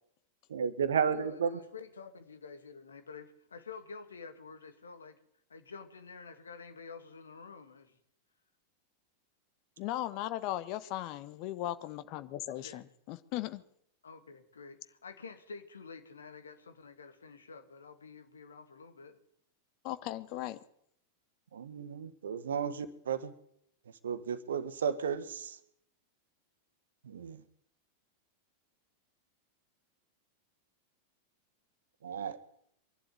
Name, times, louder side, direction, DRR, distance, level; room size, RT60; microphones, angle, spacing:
voice 1, 0.5-1.6 21.5-23.3 24.0-25.6 27.0-27.4 32.0-32.4, right 7 dB, 65° right, 14 dB, 1.5 m, -33 dB
voice 2, 1.1-5.2 5.5-8.0 12.5-12.8 14.0-19.2, left 5 dB, 70° left, 9 dB, 2.3 m, -49 dB
voice 3, 9.8-13.6 19.8-20.6, left 14 dB, 45° left, 13 dB, 1.5 m, -37 dB
24.0 x 12.0 x 9.3 m, 0.72 s
figure-of-eight pair, 90°, 0 cm